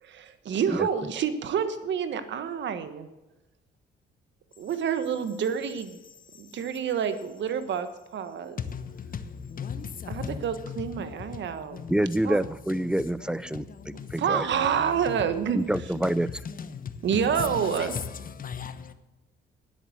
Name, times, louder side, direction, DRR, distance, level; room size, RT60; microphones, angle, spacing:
voice 1, 0.0-3.1 4.6-6.0 6.4-8.6 10.1-11.8 12.2-12.4 13.9-15.6 17.0-17.9, right 7 dB, 65° right, 1.4 m, -28 dB
voice 2, 8.7-9.2 9.5-10.4 11.7-11.8 13.9-14.1 18.4-18.9, left 7 dB, 45° left, 1.1 m, -36 dB
voice 3, 11.9-13.7 14.1-14.4 15.5-16.3, right 1 dB, 5° right, 0.5 m, -26 dB
10.0 x 8.1 x 8.0 m
cardioid pair, 90°, 20 cm